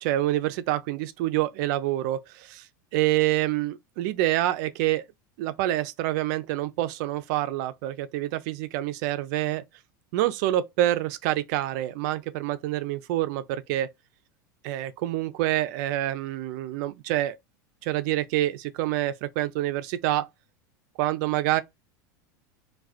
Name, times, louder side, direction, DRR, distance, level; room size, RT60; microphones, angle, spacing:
voice 1, 0.0-2.7 2.9-5.0 5.4-9.6 10.1-13.9 14.6-17.4 17.8-20.3 21.0-21.6, right 14 dB, 60° right, 0.4 m, -27 dB
2.3 x 2.2 x 2.4 m
hypercardioid pair, 90°, 10 cm